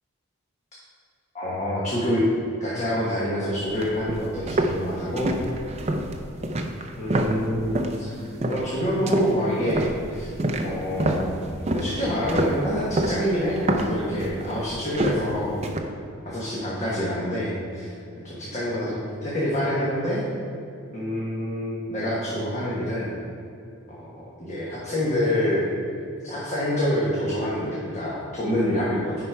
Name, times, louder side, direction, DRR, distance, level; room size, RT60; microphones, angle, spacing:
voice 1, 1.3-2.2 2.6-5.3 7.0-10.3 10.6-11.4 11.7-15.6 16.2-17.9 18.2-20.2 20.9-23.1 23.9-25.7 26.2-29.2, equal, 30° left, -7 dB, 1.3 m, -27 dB
sound 1, 3.6-8.0 8.4-8.7 9.1-15.8, right 1 dB, 30° right, 0.5 m, -27 dB
10.0 x 4.3 x 4.7 m, 2.6 s
head